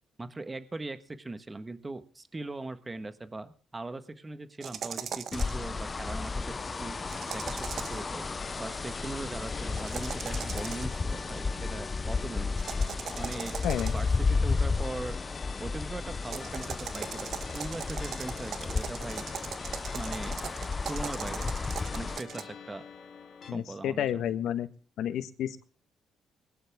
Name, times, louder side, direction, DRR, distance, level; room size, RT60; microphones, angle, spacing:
voice 1, 0.2-7.0 7.3-8.3 8.6-12.6 13.2-13.6 13.9-15.2 15.6-17.3 17.5-19.3 19.9-20.4 20.9-21.5 21.9-22.8 23.5-24.2, right 2 dB, 20° right, 11 dB, 1.5 m, -40 dB
sound 1, 4.6-5.6 7.1-8.1 9.7-11.0 12.6-14.2 16.2-22.4, right 8 dB, 65° right, 1.3 m, -40 dB
sound 2, 5.3-22.2, left 4 dB, 30° left, 0.7 m, -33 dB
sound 3, 6.4-23.5, left 6 dB, 50° left, 3.2 m, -47 dB
voice 2, 13.6-13.9 23.5-24.7 25.0-25.6, left 10 dB, 80° left, 12 dB, 1.4 m, -31 dB
21.0 x 11.0 x 3.7 m, 0.40 s
cardioid pair, 90°, 0 cm